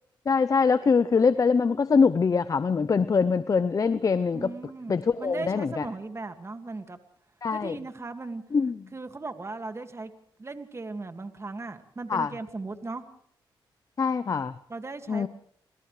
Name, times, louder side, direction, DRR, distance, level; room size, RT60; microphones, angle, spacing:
voice 1, 0.3-4.5 4.9-5.8 7.4-7.8 8.5-8.7 12.1-12.3 14.0-14.5 15.1-15.3, left 5 dB, 40° left, 14 dB, 0.7 m, -23 dB
voice 2, 4.3-7.0 7.5-8.4 8.9-10.1 10.4-13.1 14.7-15.3, right 3 dB, 30° right, 7 dB, 2.1 m, -37 dB
30.0 x 27.0 x 3.3 m, 0.66 s
cardioid pair, 80°, 9 cm